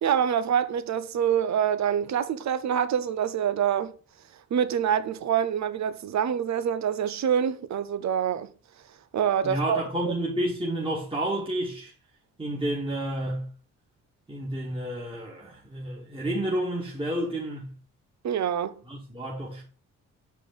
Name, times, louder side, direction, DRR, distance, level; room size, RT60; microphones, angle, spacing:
voice 1, 0.0-3.9 4.5-8.5 9.1-10.1 18.2-18.7, right 8 dB, 55° right, 0.7 m, -26 dB
voice 2, 9.4-11.9 12.4-13.5 14.3-17.8 18.8-19.6, right 1 dB, 15° right, 2.0 m, -30 dB
6.3 x 5.0 x 4.0 m
supercardioid pair, 55°, 33 cm